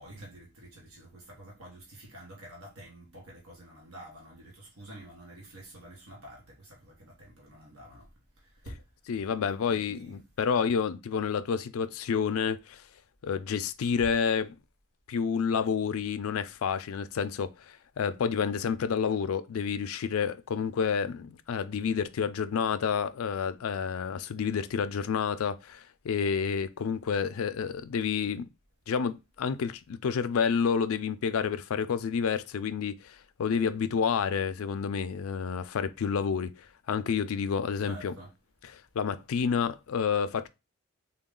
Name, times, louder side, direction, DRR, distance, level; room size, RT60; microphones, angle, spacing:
voice 1, 0.0-8.1 8.4-8.8 9.7-10.2 37.8-38.3, right 1 dB, 85° right, 1.2 m, -48 dB
voice 2, 9.1-12.8 13.2-14.6 15.1-28.5 28.9-38.1 38.6-40.5, left 6 dB, 75° left, 0.4 m, -29 dB
3.8 x 2.3 x 3.7 m
head